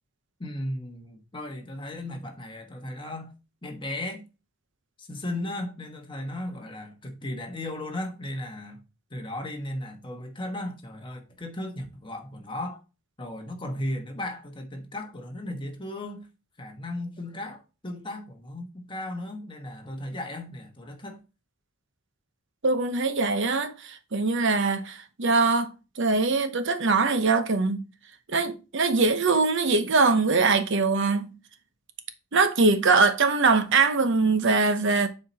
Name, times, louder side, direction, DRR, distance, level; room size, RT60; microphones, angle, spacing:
voice 1, 0.4-3.3 3.6-4.2 5.0-8.8 9.1-12.8 13.2-16.3 16.6-21.2, left 1 dB, 25° left, 1.2 m, -36 dB
voice 2, 22.6-25.7 26.0-27.8 28.3-31.3 32.3-35.1, right 4 dB, 60° right, 0.8 m, -22 dB
7.5 x 4.4 x 4.1 m
head